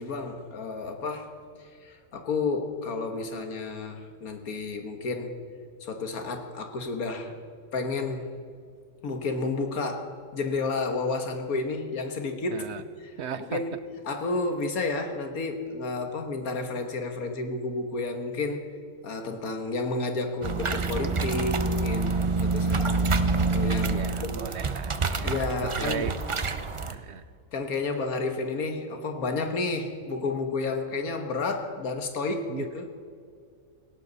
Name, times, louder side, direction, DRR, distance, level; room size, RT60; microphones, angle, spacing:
voice 1, 0.0-1.4 1.8-5.4 5.8-7.4 7.7-8.4 9.0-12.7 13.0-13.1 13.5-13.8 14.1-18.6 19.0-22.2 22.4-23.1 23.4-24.5 25.2-26.1 27.5-32.9, left 3 dB, 85° left, 6 dB, 1.9 m, -31 dB
voice 2, 12.5-12.8 13.2-13.6 23.8-25.4 25.8-26.2 26.9-27.2 32.5-32.7, right 8 dB, 65° right, 13 dB, 0.7 m, -36 dB
sound 1, 20.4-26.9, right 3 dB, 35° right, 0.5 m, -27 dB
18.5 x 16.5 x 4.1 m, 2.2 s
omnidirectional pair, 1.5 m